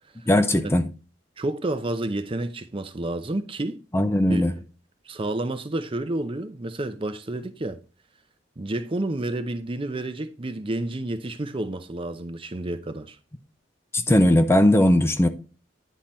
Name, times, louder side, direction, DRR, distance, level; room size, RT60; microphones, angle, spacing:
voice 1, 0.3-0.8 3.9-4.6 13.9-15.3, left 1 dB, 15° left, 0.5 m, -18 dB
voice 2, 1.4-3.8 4.3-4.4 5.1-7.8 8.6-13.2, right 2 dB, 30° right, 0.6 m, -30 dB
10.0 x 3.9 x 4.2 m
head